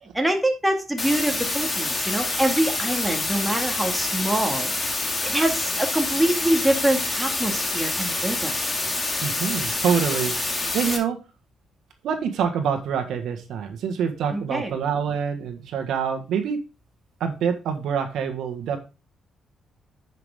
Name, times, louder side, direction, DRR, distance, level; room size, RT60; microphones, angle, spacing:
voice 1, 0.1-4.7 5.2-8.5 14.3-14.7, right 1 dB, 10° right, 3 dB, 2.1 m, -24 dB
sound 1, 1.0-11.0, left 2 dB, 25° left, 2.3 m, -27 dB
voice 2, 9.2-11.2 12.0-16.6 17.2-18.8, right 7 dB, 75° right, 6 dB, 1.5 m, -26 dB
9.8 x 6.0 x 3.6 m, 0.30 s
cardioid pair, 90°, 0 cm